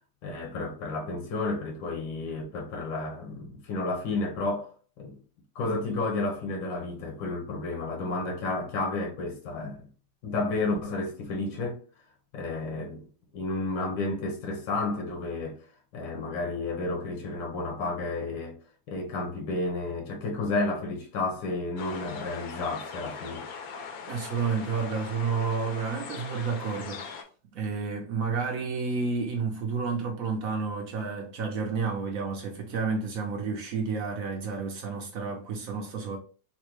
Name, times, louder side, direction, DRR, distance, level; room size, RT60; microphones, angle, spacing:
voice 1, 0.2-5.1 5.5-9.9 10.2-11.8 12.3-13.1 13.3-15.6 15.9-18.6 18.9-23.5, left 2 dB, 85° left, 1.6 m, -31 dB
sound 1, 21.8-27.2, left 5 dB, 70° left, 0.9 m, -40 dB
voice 2, 24.1-27.0 27.5-36.2, right 5 dB, 70° right, 0.8 m, -30 dB
4.0 x 2.1 x 3.0 m
omnidirectional pair, 2.0 m